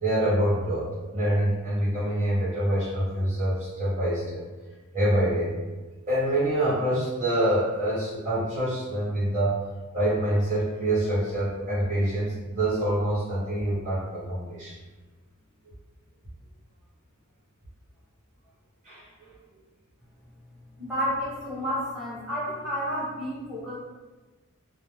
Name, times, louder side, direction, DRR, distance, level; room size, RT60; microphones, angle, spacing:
voice 1, 0.0-4.4 4.9-5.5 6.1-9.6 9.9-14.8 18.8-19.0, right 1 dB, 35° right, -10 dB, 0.9 m, -26 dB
voice 2, 20.8-23.7, equal, ahead, -9 dB, 0.9 m, -30 dB
2.4 x 2.1 x 3.1 m, 1.2 s
head